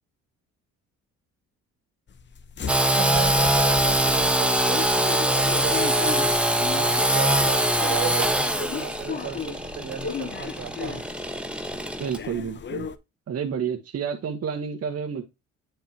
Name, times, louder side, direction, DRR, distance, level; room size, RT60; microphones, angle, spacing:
sound 1, 2.1-12.9, left 6 dB, 40° left, 0.8 m, -36 dB
Engine / Sawing, 2.7-12.2, right 1 dB, 5° right, 1.3 m, -23 dB
voice 1, 2.9-6.4 6.7-11.1, right 9 dB, 85° right, 2.4 m, -35 dB
voice 2, 12.0-12.9 13.3-15.2, right 7 dB, 50° right, 1.3 m, -30 dB
9.1 x 5.2 x 2.8 m
cardioid pair, 90°, 30 cm